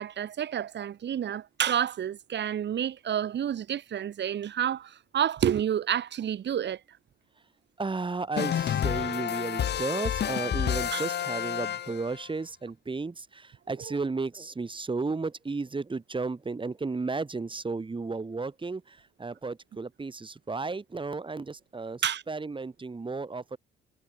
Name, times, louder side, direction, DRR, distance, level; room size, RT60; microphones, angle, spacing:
voice 1, 0.0-6.8 10.9-11.0 13.9-14.0 22.0-22.2, right 9 dB, 60° right, 4.0 m, -29 dB
voice 2, 7.8-23.6, right 3 dB, 25° right, 4.7 m, -34 dB
sound 1, 8.4-12.2, left 9 dB, 55° left, 1.7 m, -29 dB
cardioid pair, 90°, 20 cm